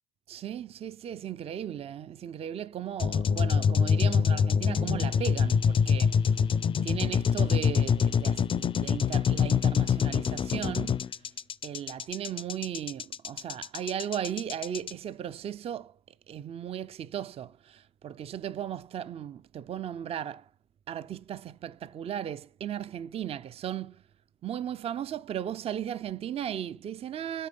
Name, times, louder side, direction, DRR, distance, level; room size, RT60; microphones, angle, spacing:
voice 1, 0.3-6.2 6.8-11.0 11.6-16.0 16.3-20.5 20.9-24.0 24.4-27.5, right 10 dB, 35° right, 0.4 m, -36 dB
sound 1, 3.0-14.9, left 7 dB, 30° left, 0.4 m, -25 dB
8.5 x 3.8 x 6.9 m
cardioid pair, 110°, 17 cm